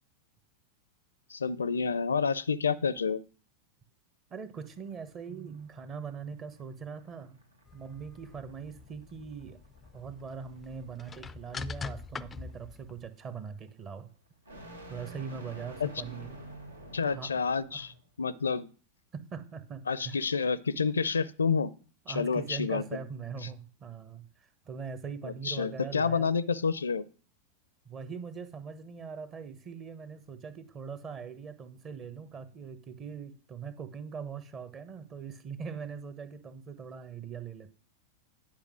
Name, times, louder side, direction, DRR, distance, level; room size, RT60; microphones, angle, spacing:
voice 1, 1.3-3.2 15.8-15.9 16.9-18.7 19.9-21.7 22.1-22.8 25.2-27.0, left 5 dB, 75° left, 19 dB, 0.5 m, -29 dB
voice 2, 4.3-7.4 7.7-9.6 9.9-14.1 14.9-16.4 17.1-17.3 17.7-17.8 19.1-20.2 22.0-24.2 24.7-26.3 27.8-37.7, right 6 dB, 30° right, 11 dB, 1.1 m, -41 dB
sound 1, 4.5-18.0, equal, 80° right, 1.6 m, -51 dB
sound 2, 7.7-13.1, left 4 dB, 15° left, 0.4 m, -44 dB
10.5 x 5.3 x 6.1 m, 0.39 s
figure-of-eight pair, 90°, 0 cm